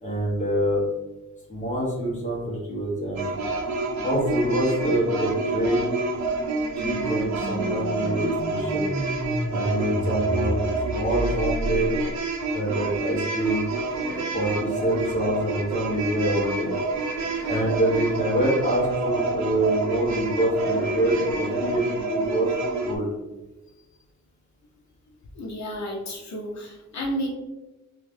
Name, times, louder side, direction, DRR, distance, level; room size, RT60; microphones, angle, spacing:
voice 1, 0.0-0.8 1.5-3.3 4.0-5.8 6.8-8.9 9.5-12.0 12.5-13.7 14.3-16.7 17.5-23.1, right 1 dB, 25° left, -4 dB, 0.8 m, -25 dB
sound 1, 2.1-12.2, right 1 dB, ahead, 1.4 m, -34 dB
sound 2, 3.2-23.0, right 3 dB, 70° right, 0.5 m, -28 dB
sound 3, 13.6-14.5 16.7-19.2 20.6-21.9, right 4 dB, 35° right, 0.7 m, -38 dB
voice 2, 25.3-27.3, equal, 70° left, -2 dB, 0.6 m, -31 dB
2.6 x 2.3 x 3.4 m, 1.1 s
wide cardioid pair, 175°, 29 cm